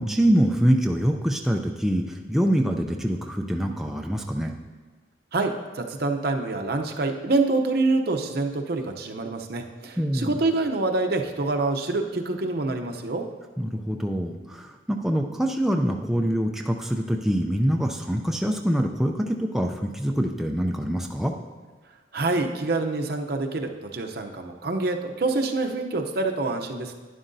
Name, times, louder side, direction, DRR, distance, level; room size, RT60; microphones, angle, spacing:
voice 1, 0.0-4.5 10.0-10.4 13.6-21.3, equal, ahead, 2 dB, 0.4 m, -25 dB
voice 2, 5.3-13.2 22.1-26.9, right 3 dB, 55° right, 4 dB, 0.7 m, -26 dB
11.0 x 10.0 x 2.7 m, 1.3 s
head